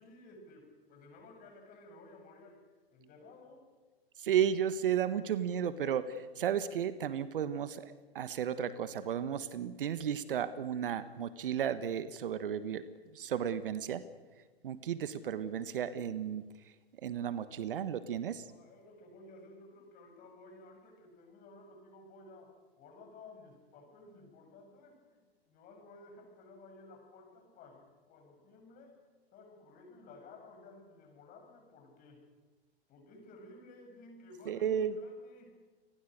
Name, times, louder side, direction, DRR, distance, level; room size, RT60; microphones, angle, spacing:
voice 1, 0.0-2.6 2.9-3.7 18.5-29.0 29.3-32.2 32.9-35.6, left 2 dB, 25° left, 2 dB, 7.8 m, -55 dB
voice 2, 4.2-12.8 13.1-14.0 14.6-16.4 17.0-18.5 34.5-35.0, right 9 dB, 60° right, 13 dB, 1.4 m, -33 dB
28.0 x 21.5 x 6.6 m, 1.3 s
figure-of-eight pair, 120°, 32 cm